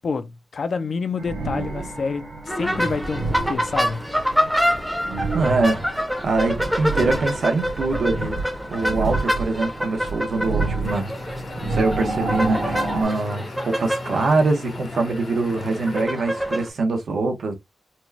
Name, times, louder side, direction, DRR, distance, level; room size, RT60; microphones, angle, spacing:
voice 1, 0.0-4.1, left 5 dB, 50° left, 0.4 m, -28 dB
sound 1, 1.2-13.0, right 3 dB, 50° right, 1.5 m, -30 dB
sound 2, 2.5-16.7, equal, ahead, 0.7 m, -27 dB
voice 2, 5.3-5.8 6.2-8.4 8.7-11.1 11.6-17.6, right 3 dB, 65° right, 1.0 m, -23 dB
sound 3, 10.8-16.1, left 3 dB, 75° left, 1.3 m, -37 dB
4.3 x 2.2 x 2.7 m
wide cardioid pair, 165°, 0 cm